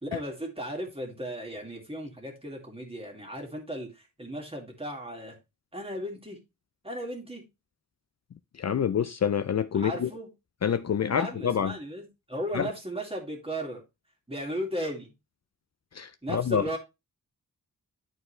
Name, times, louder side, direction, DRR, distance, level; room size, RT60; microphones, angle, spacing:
voice 1, 0.0-5.4 5.7-6.4 6.8-7.4 9.7-10.3 11.1-13.8 14.3-15.1 16.2-16.8, equal, 15° right, 2.2 m, -36 dB
voice 2, 8.6-10.1 10.6-11.7 12.5-12.7 15.9-16.6, left 8 dB, 50° left, 0.4 m, -27 dB
11.0 x 4.5 x 3.2 m
wide cardioid pair, 120°, 34 cm